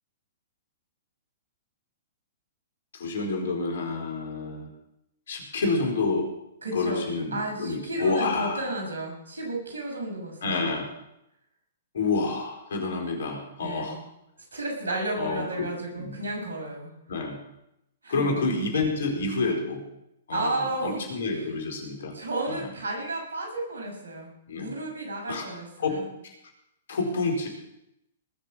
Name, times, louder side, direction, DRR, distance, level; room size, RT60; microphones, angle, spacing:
voice 1, 2.9-4.7 5.3-6.3 6.7-8.6 10.4-10.9 11.9-14.0 15.2-15.7 15.9-16.2 17.1-17.4 18.1-19.8 20.3-22.2 22.5-22.7 24.5-24.8 25.3-25.4 25.8-26.0 26.9-27.5, left 3 dB, 65° left, 2 dB, 4.6 m, -28 dB
voice 2, 6.6-7.0 7.3-10.8 13.6-14.0 14.5-16.9 18.0-18.3 20.3-21.5 22.1-26.0, right 2 dB, 80° right, 0 dB, 6.7 m, -33 dB
19.5 x 7.4 x 7.5 m, 0.83 s
figure-of-eight pair, 115°, 0 cm